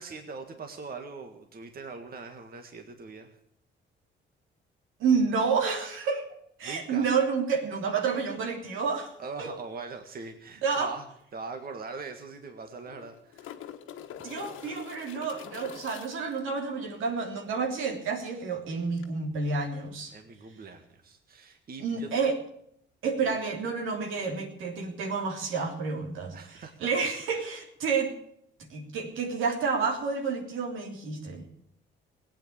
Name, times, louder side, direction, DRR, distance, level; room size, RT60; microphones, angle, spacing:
voice 1, 0.0-3.4 6.6-7.1 9.2-11.1 11.3-13.5 20.1-22.1 23.3-23.4 26.3-26.9 27.3-27.5, right 4 dB, 50° right, 5 dB, 1.8 m, -41 dB
voice 2, 5.0-6.2 6.6-9.1 9.4-9.5 10.6-10.9 14.2-20.1 21.8-22.4 23.0-28.1 28.6-31.4, right 5 dB, 85° right, 1 dB, 3.3 m, -29 dB
sound 1, 11.2-11.3 11.6-11.7 12.7-16.4 19.0-19.1, left 10 dB, 90° left, 1.5 m, -45 dB
18.0 x 9.0 x 8.7 m, 0.71 s
cardioid pair, 90°, 20 cm